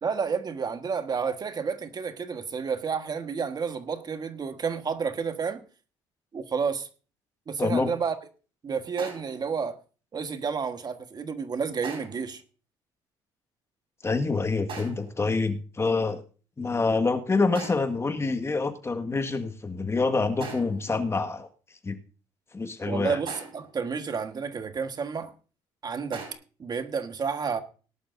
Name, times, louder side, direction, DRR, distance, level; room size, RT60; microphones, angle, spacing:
voice 1, 0.0-5.6 6.3-6.9 7.5-8.1 8.6-9.8 10.1-12.4 22.8-25.3 25.8-26.2 26.6-27.6, right 5 dB, 40° right, 1.5 m, -30 dB
voice 2, 7.6-7.9 14.0-16.2 16.6-21.5 21.8-22.0 22.5-23.2, left 3 dB, 25° left, 1.7 m, -26 dB
sound 1, 9.0-9.5 11.8-12.3 14.7-15.2 17.5-18.1 20.4-20.9 23.3-23.8 26.1-26.3, right 5 dB, 55° right, 5.6 m, -40 dB
18.5 x 11.5 x 2.7 m
supercardioid pair, 75°, 11 cm